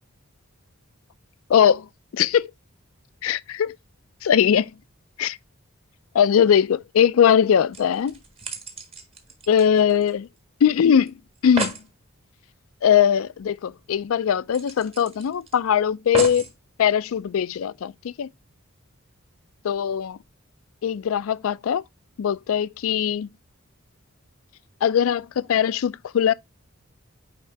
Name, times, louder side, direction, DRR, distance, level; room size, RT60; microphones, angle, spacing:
voice 1, 1.5-1.9 2.1-2.5 3.2-3.8 4.2-4.7 5.2-5.4 6.1-8.1 9.5-10.3 10.6-11.1 11.4-11.7 12.8-16.5 16.8-18.3 19.6-20.2 20.8-21.8 22.2-23.3 24.8-26.3, left 8 dB, 75° left, 0.4 m, -20 dB
sound 1, 7.7-10.4 10.6-10.7 11.1-11.2 11.3-11.9 13.4-13.5 13.8-13.9 14.5-15.5 16.1-16.5 17.3-17.4, right 3 dB, 25° right, 1.4 m, -33 dB
9.4 x 3.6 x 3.3 m
head